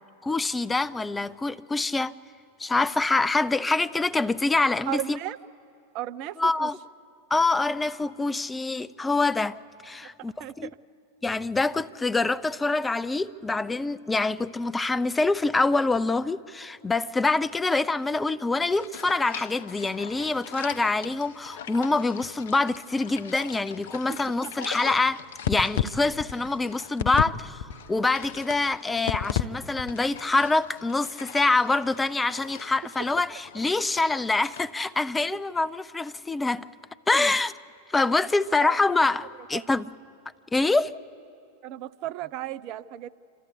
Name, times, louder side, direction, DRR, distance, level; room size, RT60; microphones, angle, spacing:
voice 1, 0.2-2.1 2.6-5.2 6.4-6.8 7.3-9.6 9.8-10.7 11.2-27.6 27.9-36.7 37.1-37.5 37.9-39.9 40.5-40.9, left 3 dB, 10° left, 0.5 m, -25 dB
voice 2, 4.9-5.4 5.9-6.7 10.0-10.1 10.4-10.8 23.9-24.2 24.4-24.5 38.6-38.8 39.5-39.6 41.6-43.1, right 14 dB, 40° right, 0.5 m, -35 dB
sound 1, 18.7-27.3 27.6-29.4 29.8-34.6, left 10 dB, 55° left, 0.7 m, -36 dB
27.5 x 13.0 x 8.2 m
figure-of-eight pair, 90°, 0 cm